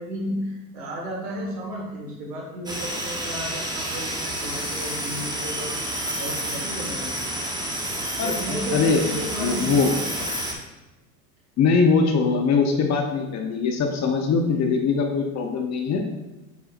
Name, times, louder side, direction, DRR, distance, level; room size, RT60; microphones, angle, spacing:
voice 1, 0.0-7.1 8.2-10.3, equal, 85° right, -2 dB, 1.6 m, -33 dB
sound 1, 2.7-10.5, right 1 dB, 10° right, 1.0 m, -29 dB
voice 2, 8.2-9.0 9.4-9.9 11.6-16.0, left 5 dB, 35° left, 3 dB, 0.8 m, -22 dB
8.0 x 4.8 x 2.5 m, 1.1 s
hypercardioid pair, 90°, 47 cm